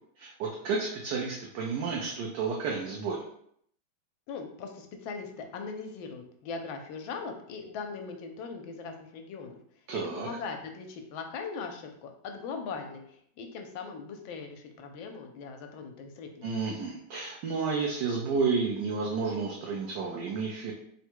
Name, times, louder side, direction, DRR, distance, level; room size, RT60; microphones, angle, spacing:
voice 1, 0.2-3.2 9.9-10.3 16.4-20.7, right 4 dB, 70° right, -2 dB, 1.2 m, -31 dB
voice 2, 4.3-9.6 9.9-16.5, left 5 dB, 80° left, 4 dB, 1.4 m, -40 dB
3.7 x 2.2 x 4.4 m, 0.68 s
omnidirectional pair, 2.2 m